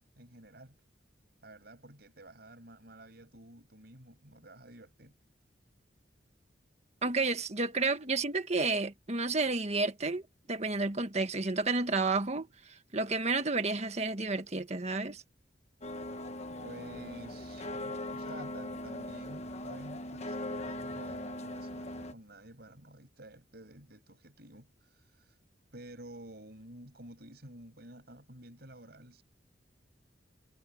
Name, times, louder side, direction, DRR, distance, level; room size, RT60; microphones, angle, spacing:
voice 1, 0.2-0.7 1.4-5.1 16.6-25.4 25.7-29.2, right 1 dB, 60° right, 6.6 m, -51 dB
voice 2, 7.0-10.2 10.5-15.2, right 3 dB, 35° right, 1.6 m, -31 dB
sound 1, 15.8-22.1, left 1 dB, 35° left, 1.2 m, -40 dB
head